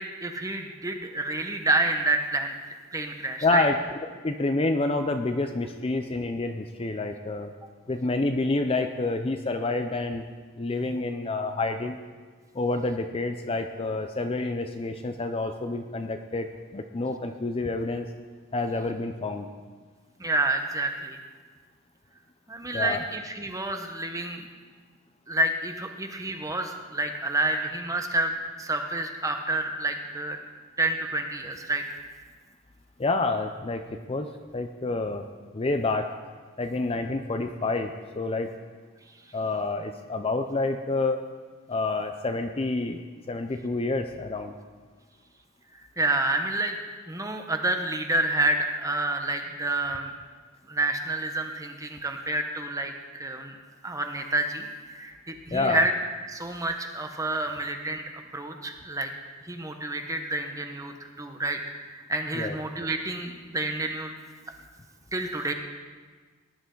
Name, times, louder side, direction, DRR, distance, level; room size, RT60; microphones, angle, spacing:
voice 1, 0.0-2.5 2.9-3.6 20.2-21.2 22.5-24.5 25.3-30.4 30.8-31.8 46.0-46.8 47.1-50.1 50.7-53.5 53.8-55.9 56.3-59.1 59.4-61.6 61.9-64.1 65.1-65.5, right 2 dB, 15° right, 5 dB, 1.0 m, -29 dB
voice 2, 3.4-4.0 4.2-7.5 7.9-10.2 10.6-12.0 12.5-18.1 18.5-19.5 22.7-23.0 33.0-33.8 34.1-34.3 34.5-35.2 35.5-36.1 36.6-38.5 39.3-41.2 41.7-43.0 43.3-44.5 55.5-55.8 62.4-62.6, left 2 dB, 25° left, 6 dB, 0.5 m, -28 dB
18.5 x 11.0 x 3.9 m, 1.5 s
head